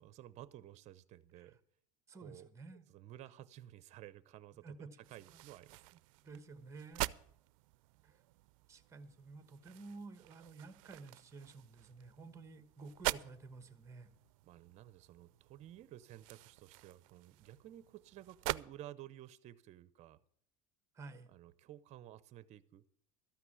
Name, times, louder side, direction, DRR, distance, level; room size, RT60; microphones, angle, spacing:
voice 1, 0.0-1.6 2.2-6.0 14.4-20.2 21.3-22.8, right 13 dB, 45° right, 17 dB, 0.7 m, -54 dB
voice 2, 2.1-2.9 4.6-4.9 5.3-5.4 6.2-7.1 8.0-8.2 8.7-14.1 20.9-21.3, right 3 dB, 15° right, 11 dB, 1.1 m, -52 dB
sound 1, 5.0-18.6, right 20 dB, 90° right, 0.4 m, -46 dB
13.0 x 5.9 x 9.6 m, 0.66 s
cardioid pair, 140°, 17 cm